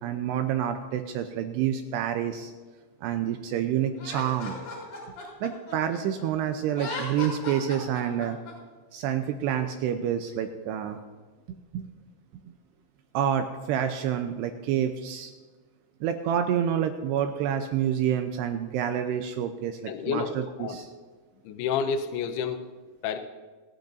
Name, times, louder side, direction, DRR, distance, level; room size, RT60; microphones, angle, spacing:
voice 1, 0.0-2.5 3.0-4.6 5.4-8.4 8.9-11.0 11.7-11.8 12.5-12.6 13.1-15.3 16.0-20.9, right 9 dB, 85° right, 7 dB, 2.6 m, -28 dB
Laughter, 4.0-6.2 6.7-8.5, left 3 dB, 45° left, 5.1 m, -37 dB
voice 2, 19.9-20.3 20.6-20.8 21.5-22.6 23.0-23.2, left 6 dB, 75° left, 6 dB, 2.7 m, -29 dB
29.5 x 10.5 x 2.6 m, 1.4 s
omnidirectional pair, 5.1 m